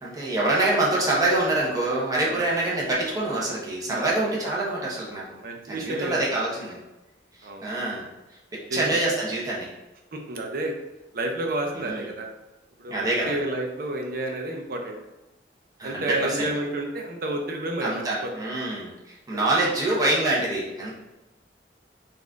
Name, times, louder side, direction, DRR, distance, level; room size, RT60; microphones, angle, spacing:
voice 1, 0.0-5.4 5.7-6.8 7.4-8.1 8.5-9.7 11.8-12.1 12.9-13.4 15.8-16.5 17.8-20.9, right 2 dB, 20° right, -6 dB, 1.0 m, -25 dB
voice 2, 3.9-4.3 5.4-6.5 7.4-7.7 8.5-9.0 10.1-10.8 11.1-12.3 12.8-15.0 15.8-18.3 19.5-19.6, right 2 dB, 55° right, 2 dB, 0.6 m, -31 dB
4.0 x 2.5 x 3.5 m, 1.0 s
head